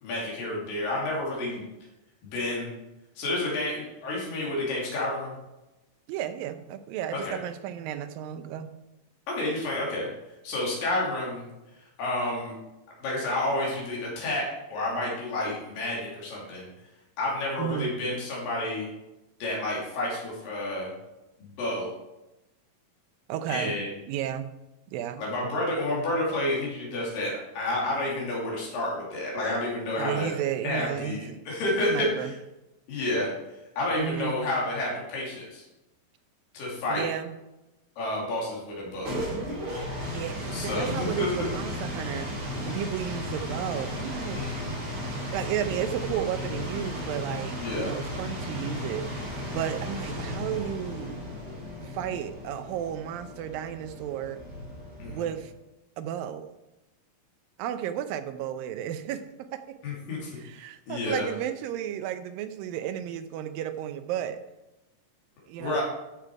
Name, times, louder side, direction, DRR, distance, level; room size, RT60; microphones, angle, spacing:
voice 1, 0.0-1.6 2.3-2.7 3.2-5.3 7.1-7.4 9.3-10.1 10.4-11.5 11.8-12.5 13.0-16.7 17.2-18.9 19.4-20.9 21.4-21.9 23.5-23.9 25.2-30.3 30.6-32.3 32.9-33.3 33.8-35.6 36.5-37.1 38.0-39.2 40.5-41.3 44.3-44.7 47.6-47.9 55.0-55.2 59.8-60.4 60.9-61.3 65.6-65.8, left 1 dB, 80° left, -4 dB, 4.4 m, -30 dB
voice 2, 6.1-8.7 17.6-17.9 23.3-23.7 24.1-24.5 24.9-25.2 30.0-31.4 31.9-32.3 34.0-34.4 36.9-37.3 40.0-42.3 42.7-44.4 45.3-49.1 49.5-51.2 51.8-54.4 55.1-55.5 56.0-56.5 57.6-59.2 59.5-59.8 60.4-64.4 65.5-65.8, right 10 dB, 85° right, 10 dB, 2.5 m, -33 dB
sound 1, 38.8-55.5, left 1 dB, 30° right, 3.0 m, -35 dB
12.0 x 6.9 x 4.7 m, 0.98 s
omnidirectional pair, 4.0 m